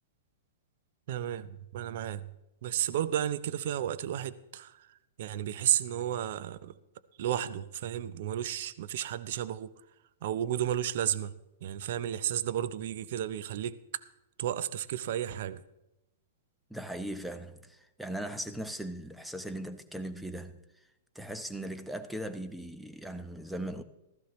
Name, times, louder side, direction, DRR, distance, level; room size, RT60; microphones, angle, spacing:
voice 1, 1.1-2.2 2.6-4.7 5.2-6.7 7.2-9.7 10.2-11.3 11.6-13.8 14.4-15.6, right 11 dB, 60° right, 0.6 m, -32 dB
voice 2, 16.7-20.6 21.1-23.8, right 1 dB, ahead, 0.8 m, -39 dB
15.5 x 13.0 x 3.1 m
hypercardioid pair, 120°, 0 cm